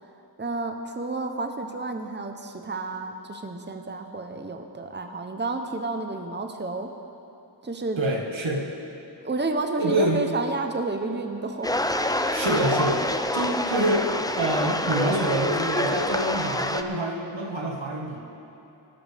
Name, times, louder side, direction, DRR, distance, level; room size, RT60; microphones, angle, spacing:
voice 1, 0.4-6.9 7.6-8.0 9.2-12.0 12.4-12.7, right 3 dB, 25° right, 5 dB, 0.8 m, -31 dB
voice 2, 8.0-8.6 9.8-10.2 12.3-14.1 14.4-18.2, right 1 dB, 90° right, -1 dB, 1.7 m, -26 dB
sound 1, 11.6-16.8, left 1 dB, 10° left, 0.5 m, -26 dB
19.5 x 12.0 x 3.5 m, 3.0 s
wide cardioid pair, 55°, 44 cm